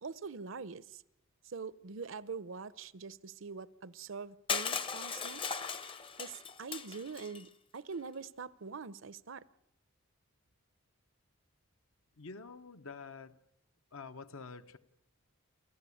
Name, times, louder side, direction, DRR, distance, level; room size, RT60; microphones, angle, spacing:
voice 1, 0.0-1.0 1.4-5.4 6.2-9.4, right 5 dB, 60° right, 18 dB, 0.7 m, -44 dB
Crushing, 4.5-7.4, left 6 dB, 25° left, 0.7 m, -38 dB
voice 2, 12.2-13.4 13.9-14.8, left 4 dB, 75° left, 10 dB, 1.0 m, -47 dB
29.0 x 12.5 x 8.5 m, 0.84 s
head